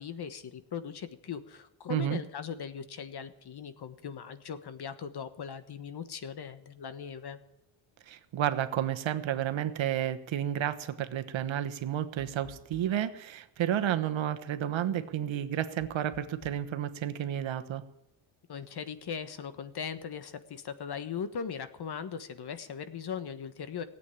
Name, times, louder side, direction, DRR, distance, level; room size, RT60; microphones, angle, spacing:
voice 1, 0.0-7.4 18.5-23.8, left 7 dB, 55° left, 11 dB, 1.4 m, -39 dB
voice 2, 8.1-17.8, right 10 dB, 70° right, 9 dB, 1.2 m, -31 dB
sound 1, 12.2-13.2 15.8-16.7, left 11 dB, 90° left, 1.5 m, -53 dB
17.0 x 8.5 x 10.0 m, 0.85 s
cardioid pair, 115°, 48 cm